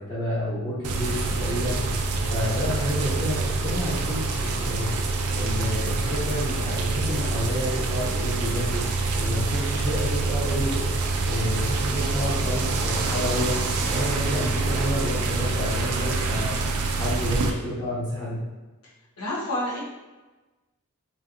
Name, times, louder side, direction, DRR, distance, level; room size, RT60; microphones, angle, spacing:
voice 1, 0.0-1.9 2.3-5.0 5.3-8.8 9.1-13.5 13.9-16.5 16.9-18.4, equal, 20° left, -9 dB, 0.7 m, -30 dB
sound 1, 0.8-17.5, right 3 dB, 80° right, 0.4 m, -26 dB
voice 2, 19.2-19.8, left 1 dB, 85° left, -5 dB, 0.9 m, -28 dB
3.1 x 2.7 x 2.5 m, 1.2 s
head